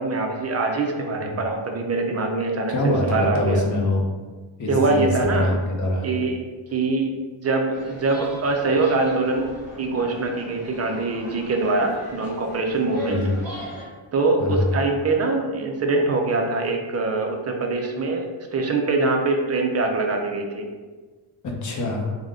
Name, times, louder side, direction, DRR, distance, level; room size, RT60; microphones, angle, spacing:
voice 1, 0.0-3.6 4.7-5.6 6.0-6.4 6.7-9.5 9.8-13.2 14.1-20.7, right 3 dB, 35° right, 2 dB, 0.4 m, -23 dB
voice 2, 2.7-4.0 4.6-6.1 13.1-13.4 14.4-14.7 21.4-22.2, left 1 dB, 40° left, 0 dB, 0.6 m, -24 dB
sound 1, 7.7-13.8, equal, ahead, 1.3 m, -39 dB
3.6 x 2.1 x 3.5 m, 1.4 s
wide cardioid pair, 130°, 49 cm